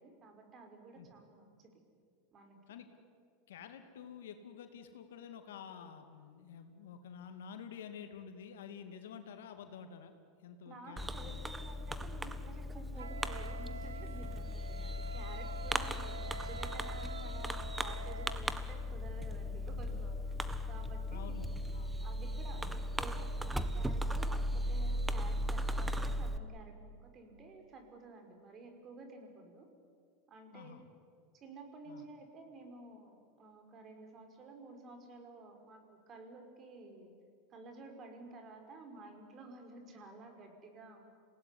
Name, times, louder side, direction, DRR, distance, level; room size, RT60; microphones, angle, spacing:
voice 1, 0.0-1.8 2.3-2.6 10.7-20.4 20.7-21.4 22.0-29.7 30.3-30.8 31.3-37.2 37.5-41.1, right 3 dB, 35° right, 4 dB, 5.2 m, -52 dB
voice 2, 3.5-10.1 10.4-11.4 20.6-20.8 21.1-21.9 22.6-22.7 30.5-30.8 31.9-32.0, left 7 dB, 75° left, 7 dB, 2.5 m, -49 dB
Fireworks, 11.0-26.4, equal, 10° right, 1.3 m, -37 dB
Wind instrument woodwind instrument, 13.0-18.4, right 7 dB, 90° right, 0.6 m, -48 dB
27.0 x 18.0 x 10.0 m, 2.2 s
hypercardioid pair, 95°, 0 cm